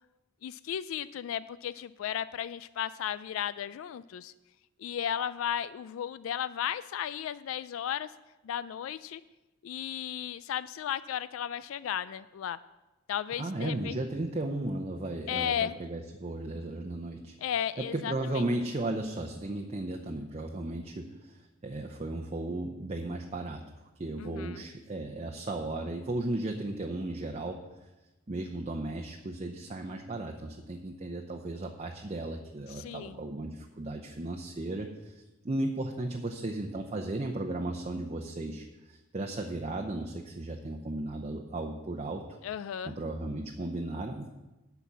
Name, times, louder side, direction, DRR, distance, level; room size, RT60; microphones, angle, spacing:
voice 1, 0.4-4.3 4.8-8.1 8.4-9.2 9.6-12.6 13.1-14.0 15.3-15.8 17.4-18.5 24.2-24.6 32.7-33.2 42.4-43.0, left 9 dB, 85° left, 15 dB, 0.3 m, -34 dB
voice 2, 13.4-17.3 17.8-23.6 24.0-27.6 28.3-42.4 42.8-44.4, right 2 dB, 35° right, 2 dB, 0.7 m, -35 dB
8.5 x 5.9 x 8.1 m, 1.1 s
head